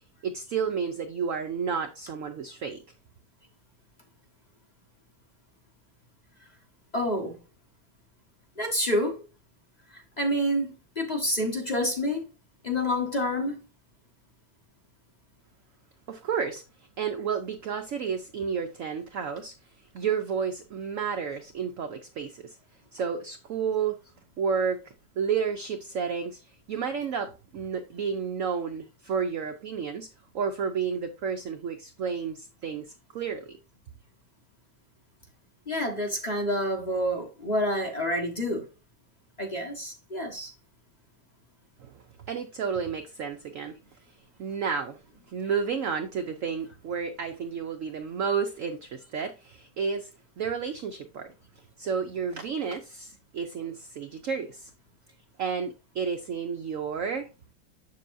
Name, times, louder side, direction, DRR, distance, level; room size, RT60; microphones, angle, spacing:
voice 1, 0.2-2.8 16.1-16.6 17.0-19.5 19.9-22.6 22.9-24.0 24.4-24.8 25.2-26.4 26.7-30.1 30.3-33.6 41.8-42.0 42.3-43.7 44.4-45.0 45.3-50.1 50.4-51.3 51.8-54.7 55.4-57.3, right 6 dB, 75° right, 0.7 m, -31 dB
voice 2, 6.9-7.4 8.6-9.2 9.9-12.2 12.6-13.6 35.7-38.6 39.4-40.5, equal, 25° left, 1.3 m, -28 dB
7.4 x 6.8 x 2.6 m
omnidirectional pair, 2.0 m